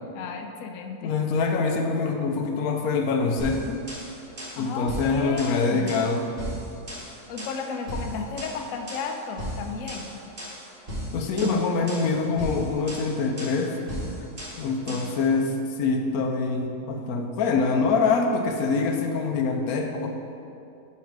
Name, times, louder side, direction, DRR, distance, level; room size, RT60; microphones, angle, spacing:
voice 1, 0.1-1.1 4.6-5.9 7.3-10.1 14.2-14.3 14.9-15.1, left 5 dB, 70° left, 5 dB, 0.9 m, -34 dB
voice 2, 1.0-3.8 4.6-6.2 11.1-13.7 14.6-20.1, left 4 dB, 90° left, 3 dB, 1.1 m, -25 dB
sound 1, 3.4-15.2, equal, 40° right, 1.9 m, -36 dB
5.7 x 5.7 x 4.6 m, 2.6 s
omnidirectional pair, 1.5 m